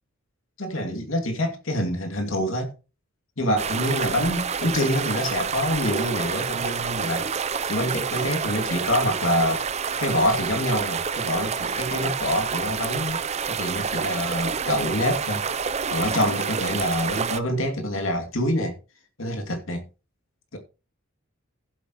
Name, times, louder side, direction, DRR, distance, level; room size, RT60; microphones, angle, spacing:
voice 1, 0.6-2.7 3.4-7.3 7.7-9.6 10.0-13.2 13.5-15.4 15.9-18.8 19.2-19.8 20.5-20.6, equal, 70° left, 2.6 m, -26 dB
sound 1, 3.6-17.4, right 6 dB, 30° right, 0.6 m, -28 dB
15.5 x 8.0 x 3.1 m
head